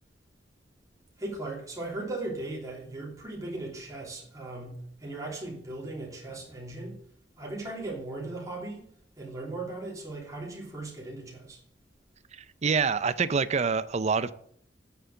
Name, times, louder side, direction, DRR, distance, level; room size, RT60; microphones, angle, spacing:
voice 1, 1.2-7.0 7.4-8.9 9.2-11.6, right 2 dB, 20° right, 3.0 m, -38 dB
voice 2, 12.3-14.3, right 5 dB, 35° right, 0.5 m, -26 dB
8.9 x 6.9 x 7.7 m
head